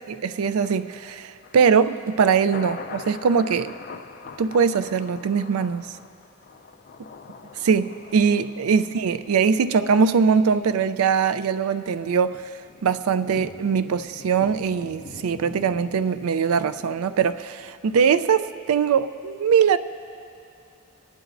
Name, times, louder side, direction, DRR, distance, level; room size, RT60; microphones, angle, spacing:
voice 1, 0.0-3.7 4.4-5.8 7.6-12.4 12.8-19.8, right 6 dB, 85° right, 13 dB, 0.4 m, -21 dB
Thunder, 0.6-17.7 18.1-18.2, left 4 dB, 45° left, 0.4 m, -44 dB
21.5 x 11.0 x 2.5 m, 2.5 s
head